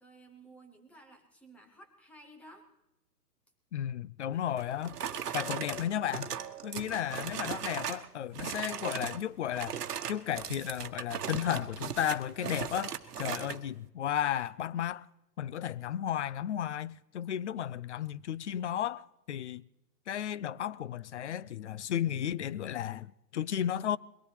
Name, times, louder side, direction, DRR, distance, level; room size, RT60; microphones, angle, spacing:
voice 1, 0.0-2.7 6.7-7.5, right 1 dB, 5° left, 0.6 m, -55 dB
voice 2, 3.7-5.0 5.3-6.3 6.6-9.8 10.1-15.1 15.4-19.6 20.1-24.0, left 10 dB, 50° left, 0.5 m, -34 dB
sound 1, 4.6-8.1 8.3-9.2 9.5-13.6, right 8 dB, 75° right, 1.2 m, -38 dB
22.5 x 18.5 x 3.3 m
hypercardioid pair, 135°, 48 cm